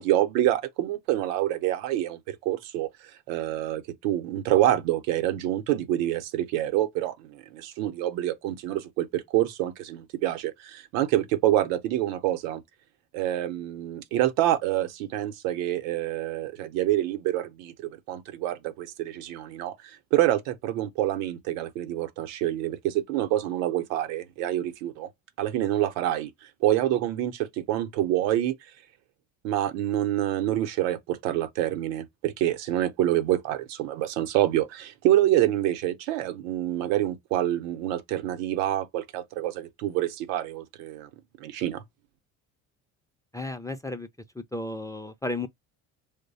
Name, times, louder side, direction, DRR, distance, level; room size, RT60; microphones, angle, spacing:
voice 1, 0.0-2.9 3.3-12.6 13.1-25.1 25.4-26.3 26.6-28.5 29.4-41.1 41.4-41.8, right 13 dB, 80° right, 0.8 m, -27 dB
voice 2, 43.3-44.1 44.3-45.5, left 2 dB, 10° left, 0.4 m, -33 dB
3.0 x 2.1 x 4.0 m
hypercardioid pair, 70°, 40 cm